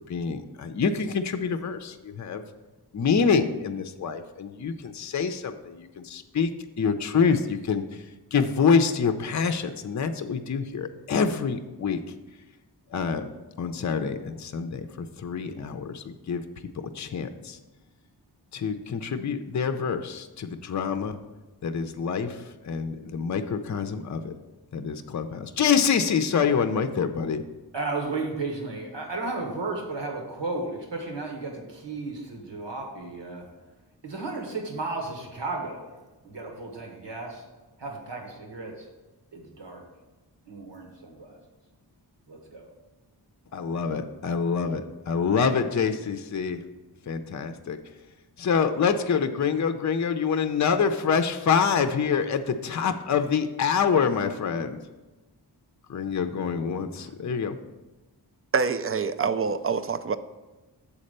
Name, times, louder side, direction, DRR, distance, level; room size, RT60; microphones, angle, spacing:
voice 1, 0.0-2.4 2.9-6.5 6.8-7.8 8.3-12.0 12.9-13.3 13.6-16.4 16.9-17.6 18.5-21.2 21.6-24.3 24.7-27.4 43.5-46.6 47.1-47.8 48.4-54.8 55.9-57.6, left 6 dB, 45° left, 8 dB, 0.5 m, -26 dB
voice 2, 27.7-33.4 34.0-35.9 36.2-37.4 37.8-38.9 39.3-39.8 40.5-41.4 42.3-42.7, right 3 dB, 85° right, 1 dB, 1.5 m, -34 dB
voice 3, 58.5-60.2, right 5 dB, 35° right, 12 dB, 0.4 m, -26 dB
7.1 x 4.2 x 6.6 m, 1.1 s
wide cardioid pair, 75°, 42 cm